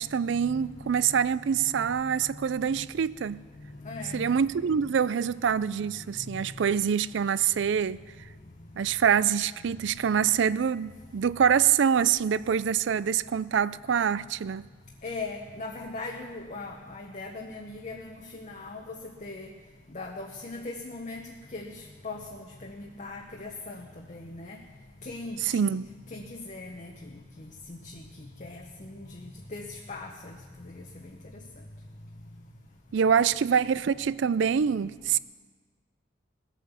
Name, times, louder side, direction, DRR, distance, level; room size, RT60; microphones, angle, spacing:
voice 1, 0.0-3.4 4.1-8.0 8.8-14.6 25.4-25.9 32.9-35.2, right 7 dB, 70° right, 0.4 m, -25 dB
voice 2, 3.8-4.3 15.0-19.0 19.2-19.5 19.9-24.6 25.0-25.4 26.1-26.9 27.4-28.0 28.4-29.2 29.5-30.3 30.6-30.8, left 3 dB, 40° left, 1.0 m, -39 dB
19.0 x 8.3 x 7.0 m
head